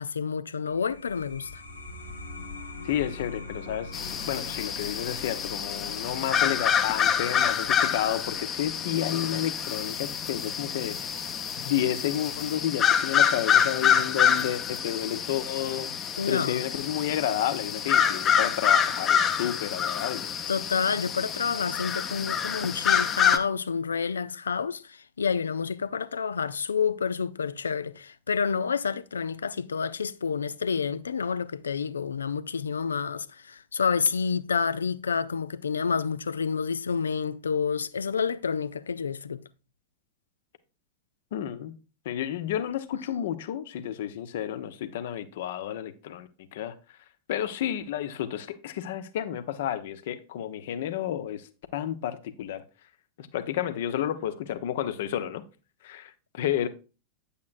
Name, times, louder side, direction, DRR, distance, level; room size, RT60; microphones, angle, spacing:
voice 1, 0.0-1.6 16.2-16.6 20.5-39.4, left 6 dB, 70° left, 0.5 m, -29 dB
sound 1, 0.7-11.8, left 3 dB, 85° left, 1.6 m, -44 dB
voice 2, 2.8-11.0 11.6-15.9 16.3-20.3 41.3-41.7 42.0-46.7 47.3-51.5 51.7-52.6 53.2-55.4 55.8-56.7, left 11 dB, 55° left, 0.9 m, -31 dB
sound 2, 3.9-23.4, left 8 dB, 25° left, 0.9 m, -27 dB
9.4 x 8.4 x 2.5 m
figure-of-eight pair, 90°, 0 cm